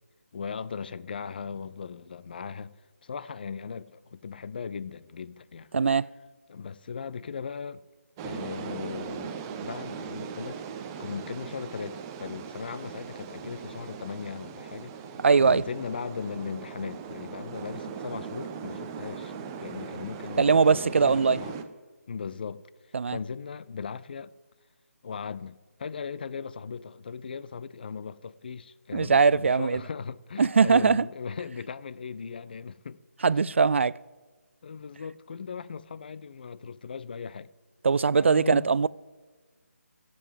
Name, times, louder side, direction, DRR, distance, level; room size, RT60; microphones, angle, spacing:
voice 1, 0.3-2.7 3.0-5.7 6.5-7.8 8.2-10.6 11.0-14.9 15.4-19.3 19.6-21.7 22.1-24.3 25.0-33.0 33.5-33.6 34.6-37.5 38.2-38.7, left 6 dB, 40° left, 0.5 m, -38 dB
voice 2, 5.7-6.1 15.2-15.6 20.4-21.4 22.9-23.2 28.9-29.8 30.4-31.0 33.2-34.0 37.8-38.9, right 5 dB, 55° right, 0.3 m, -21 dB
sound 1, 8.2-21.6, right 7 dB, 15° right, 0.6 m, -39 dB
14.5 x 7.7 x 7.7 m
figure-of-eight pair, 150°, 8 cm